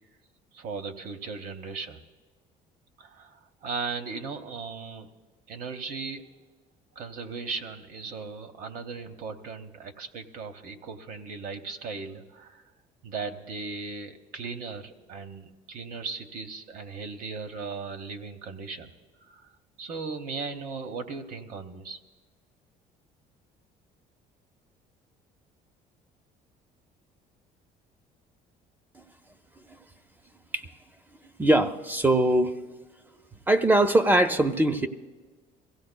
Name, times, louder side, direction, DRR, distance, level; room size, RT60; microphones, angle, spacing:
voice 1, 0.5-2.0 3.0-5.1 5.5-6.3 6.9-12.6 13.0-18.9 19.3-19.4 19.8-22.0, right 4 dB, 60° right, 8 dB, 0.9 m, -37 dB
voice 2, 31.4-32.5 33.5-34.9, right 1 dB, 15° right, 10 dB, 0.4 m, -21 dB
23.0 x 16.0 x 2.2 m, 1.3 s
cardioid pair, 135°, 15 cm